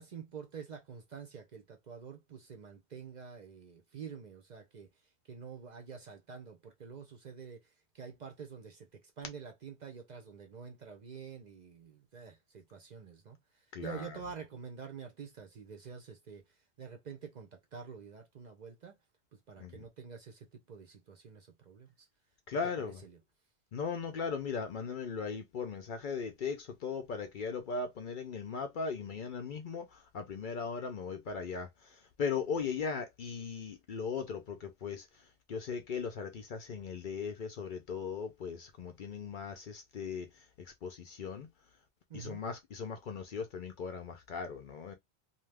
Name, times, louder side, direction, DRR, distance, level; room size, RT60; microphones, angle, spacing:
voice 1, 0.0-4.9 5.3-7.6 7.9-13.4 13.8-16.4 16.8-19.0 19.5-22.1 22.8-23.2 42.1-42.4, right 6 dB, 50° right, 0.6 m, -47 dB
voice 2, 13.7-14.2 19.6-19.8 22.5-23.0 23.7-35.1 35.5-40.3 40.6-41.5 42.1-44.9, left 5 dB, 55° left, 0.6 m, -38 dB
2.7 x 2.3 x 3.3 m
omnidirectional pair, 1.1 m